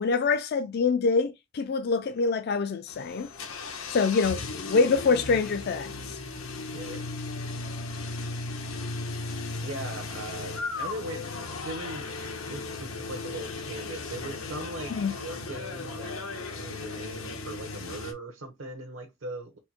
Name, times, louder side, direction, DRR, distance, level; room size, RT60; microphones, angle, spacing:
voice 1, 0.0-3.3 3.9-4.4 4.7-6.2 14.9-15.1, left 4 dB, 50° left, 0.4 m, -25 dB
sound 1, 2.9-18.1, left 3 dB, 90° left, 1.0 m, -36 dB
voice 2, 6.7-7.1 9.6-11.3 11.6-19.6, right 2 dB, 75° right, 1.0 m, -40 dB
4.4 x 2.1 x 4.4 m
head